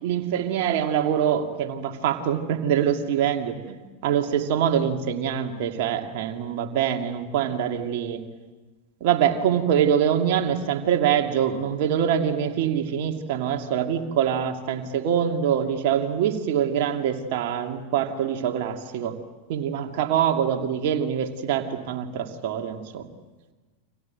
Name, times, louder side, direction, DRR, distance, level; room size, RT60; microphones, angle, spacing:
voice 1, 0.0-8.2 9.0-19.1 19.5-23.1, right 9 dB, 50° right, 4 dB, 2.6 m, -24 dB
30.0 x 25.5 x 7.7 m, 1.3 s
figure-of-eight pair, 90°, 0 cm